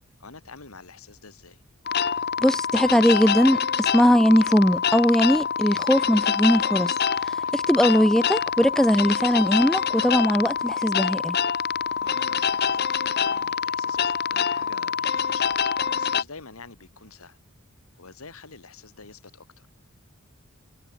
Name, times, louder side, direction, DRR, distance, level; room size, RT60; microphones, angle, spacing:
voice 1, 0.2-1.6 7.4-7.6 12.0-17.4 18.0-19.7, left 4 dB, 85° left, 2.1 m, -46 dB
sound 1, 1.9-16.2, left 7 dB, 50° left, 0.9 m, -25 dB
voice 2, 2.4-6.9 7.5-11.4, equal, ahead, 0.4 m, -20 dB
head